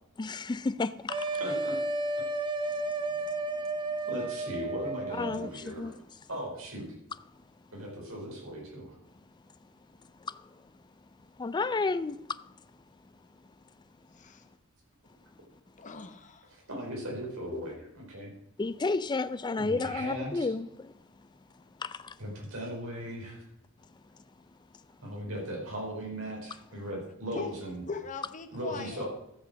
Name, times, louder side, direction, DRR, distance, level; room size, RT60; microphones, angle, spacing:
voice 1, 0.2-1.2 5.2-5.9 11.4-12.2 17.5-17.6 18.6-20.9 21.8-21.9, left 3 dB, 20° left, 0.4 m, -31 dB
sound 1, 1.1-5.5, right 2 dB, 25° right, 0.7 m, -32 dB
voice 2, 1.4-1.8 4.1-5.9 6.3-6.8 7.7-9.0 16.5-18.3 19.6-20.5 22.2-23.4 25.0-27.8 28.5-29.1, equal, 70° right, 4.9 m, -38 dB
voice 3, 15.8-16.5 25.2-25.5 27.3-27.5 27.9-29.1, left 4 dB, 35° left, 1.1 m, -40 dB
13.0 x 6.4 x 6.2 m
head